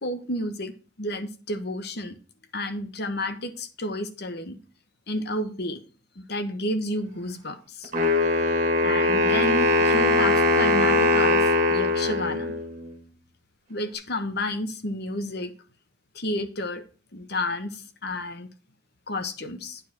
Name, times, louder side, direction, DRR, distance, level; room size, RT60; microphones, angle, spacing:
voice 1, 0.0-2.2 2.5-4.6 5.1-5.8 6.1-7.9 8.8-12.5 13.7-15.5 16.1-16.8 17.1-18.5 19.1-19.8, left 1 dB, 60° left, 9 dB, 1.2 m, -31 dB
Wind instrument woodwind instrument, 7.9-12.9, left 2 dB, 40° right, 2.1 m, -21 dB
9.2 x 4.8 x 6.0 m, 0.36 s
head